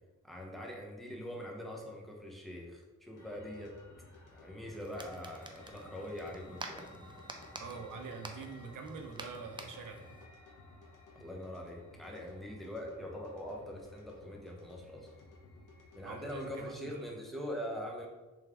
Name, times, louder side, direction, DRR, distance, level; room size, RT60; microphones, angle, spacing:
voice 1, 0.2-3.7 4.1-6.9 11.1-15.1 15.9-18.1, equal, ahead, -2 dB, 0.7 m, -43 dB
sound 1, 3.2-16.7, left 2 dB, 80° left, 0.9 m, -55 dB
sound 2, 4.8-10.3, right 2 dB, 15° right, 0.4 m, -49 dB
voice 2, 7.6-10.0 16.0-17.1, right 4 dB, 80° right, 4 dB, 0.6 m, -45 dB
3.4 x 3.2 x 3.4 m, 1.2 s
wide cardioid pair, 90°, 31 cm